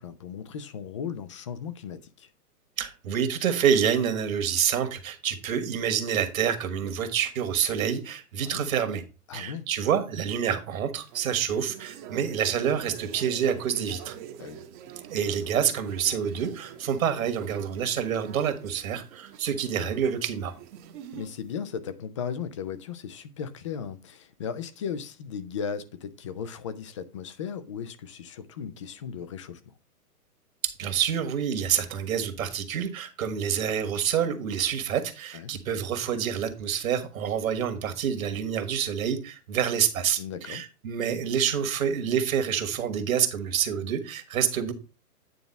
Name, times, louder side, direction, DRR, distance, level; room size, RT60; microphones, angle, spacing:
voice 1, 0.0-2.3 8.4-8.7 9.3-9.7 14.4-14.6 21.1-29.6 35.3-35.5 40.2-40.6, left 7 dB, 20° left, 0.4 m, -36 dB
voice 2, 2.8-9.0 9.3-14.2 15.1-20.5 30.6-44.7, right 8 dB, 60° right, 1.7 m, -27 dB
sound 1, 11.0-21.5, right 9 dB, 30° right, 0.9 m, -45 dB
9.4 x 3.8 x 5.2 m
hypercardioid pair, 125°, 46 cm